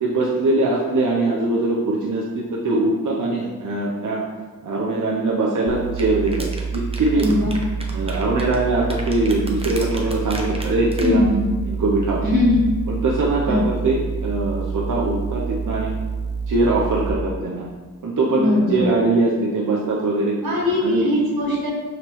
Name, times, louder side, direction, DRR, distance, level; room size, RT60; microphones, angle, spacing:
voice 1, 0.0-4.2 4.6-6.5 6.7-7.3 7.9-11.2 11.7-12.2 12.9-15.9 16.5-17.7 18.0-20.4 20.8-21.1, right 2 dB, 60° right, -4 dB, 0.6 m, -22 dB
sound 1, 5.7-17.1, right 5 dB, 30° left, 0.5 m, -28 dB
sound 2, 6.0-11.1, right 1 dB, 15° right, 0.6 m, -35 dB
voice 2, 7.1-7.5 11.0-11.4 12.2-12.6 13.4-13.6 18.3-18.8 20.4-21.7, left 1 dB, 85° right, -6 dB, 1.4 m, -20 dB
5.1 x 3.0 x 2.9 m, 1.3 s
wide cardioid pair, 70°, 35 cm